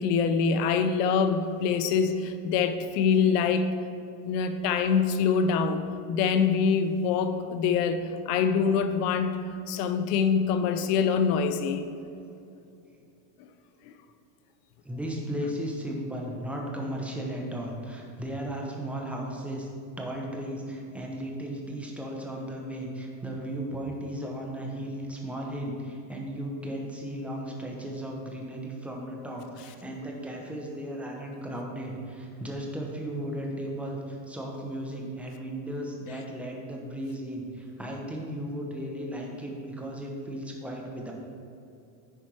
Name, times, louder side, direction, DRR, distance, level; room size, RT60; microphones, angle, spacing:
voice 1, 0.0-3.7 4.2-5.8 6.1-9.4 9.7-11.9, left 6 dB, 70° left, 8 dB, 0.9 m, -25 dB
voice 2, 14.8-19.7 20.0-41.1, right 1 dB, 5° right, -1 dB, 0.9 m, -35 dB
10.0 x 4.4 x 4.7 m, 2.7 s
supercardioid pair, 145°, 49 cm